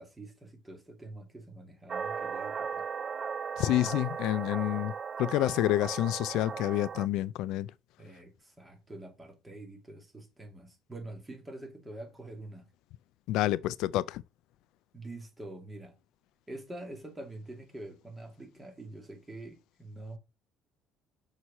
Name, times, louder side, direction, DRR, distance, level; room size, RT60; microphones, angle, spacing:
voice 1, 0.0-2.8 8.0-12.7 14.9-16.0 16.5-20.2, right 2 dB, 15° right, 2.3 m, -46 dB
sound 1, 1.9-7.1, right 6 dB, 35° right, 0.3 m, -37 dB
voice 2, 3.6-4.9 5.2-7.7 13.3-14.2, left 15 dB, 80° left, 0.4 m, -28 dB
6.3 x 5.7 x 4.2 m
cardioid pair, 130°, 0 cm